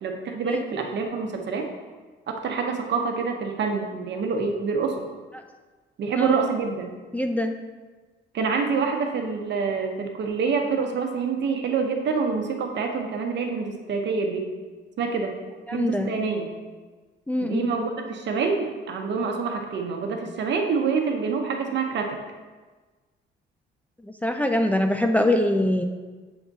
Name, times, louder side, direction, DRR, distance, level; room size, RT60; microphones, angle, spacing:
voice 1, 0.0-1.7 2.3-5.0 6.0-6.9 8.3-14.5 15.0-15.4 15.7-16.5 17.4-22.2, right 5 dB, 65° right, 3 dB, 0.9 m, -26 dB
voice 2, 7.1-7.5 15.7-16.1 17.3-17.7 24.0-25.8, left 1 dB, 5° left, 5 dB, 0.4 m, -23 dB
7.0 x 3.5 x 4.0 m, 1.3 s
cardioid pair, 90°, 20 cm